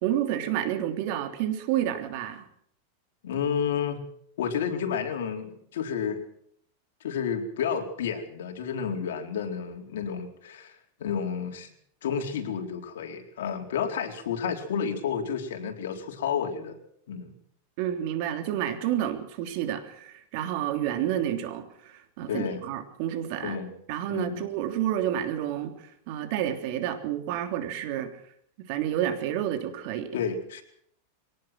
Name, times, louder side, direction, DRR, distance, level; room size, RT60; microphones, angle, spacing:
voice 1, 0.0-2.4 17.8-23.6 23.9-28.1 28.6-30.1, right 11 dB, 50° right, 6 dB, 3.3 m, -30 dB
voice 2, 3.2-4.0 4.4-6.2 7.0-11.7 12.0-16.8 17.1-17.3 22.3-22.6 23.4-23.7 24.1-24.4 30.1-30.6, left 7 dB, 85° left, 3 dB, 4.1 m, -31 dB
23.0 x 18.5 x 6.2 m, 0.69 s
supercardioid pair, 150°, 0 cm